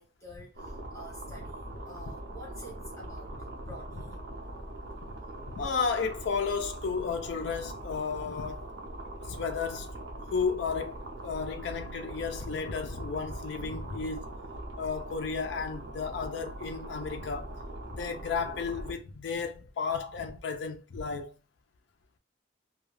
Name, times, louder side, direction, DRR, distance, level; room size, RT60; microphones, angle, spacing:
voice 1, 0.0-4.2, equal, 15° left, 0.7 m, -49 dB
sound 1, 0.5-18.9, right 1 dB, 75° right, 0.6 m, -42 dB
voice 2, 5.5-8.7 9.2-9.9 10.3-14.3 14.8-17.6 17.8-21.3, left 5 dB, 85° left, 0.4 m, -33 dB
2.2 x 2.2 x 3.2 m
head